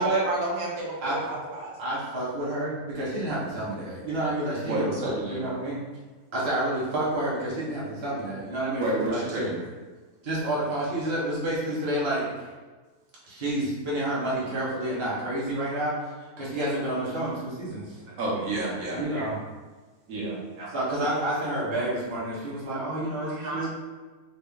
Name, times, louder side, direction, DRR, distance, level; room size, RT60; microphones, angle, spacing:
voice 1, 0.0-1.8 18.1-18.2 20.6-20.7 23.2-23.7, right 2 dB, 90° right, -3 dB, 1.4 m, -32 dB
voice 2, 1.8-5.8 6.3-9.5 10.2-12.3 13.2-15.9 16.4-18.0 18.9-19.4 20.7-23.7, right 1 dB, 25° right, -7 dB, 0.7 m, -29 dB
voice 3, 4.7-5.4 8.8-9.6 18.2-19.3 20.1-20.4, right 1 dB, 65° right, -4 dB, 1.2 m, -29 dB
3.9 x 2.0 x 3.5 m, 1.3 s
omnidirectional pair, 1.6 m